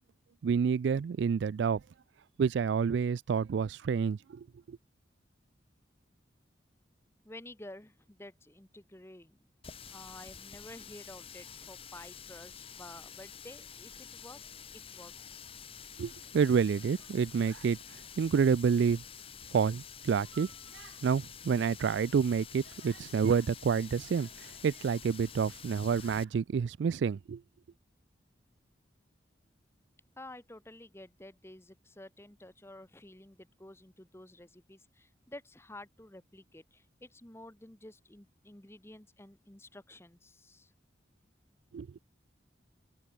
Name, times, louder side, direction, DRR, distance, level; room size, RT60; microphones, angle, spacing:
voice 1, 0.4-1.8 2.4-4.8 16.0-19.0 19.5-27.4 41.7-41.9, right 6 dB, 70° right, 0.3 m, -29 dB
voice 2, 7.2-9.4 9.9-14.4 14.9-15.1 30.2-40.7, left 1 dB, 15° left, 1.2 m, -51 dB
Water tap faucet, 9.6-26.2, left 7 dB, 30° left, 1.3 m, -49 dB
head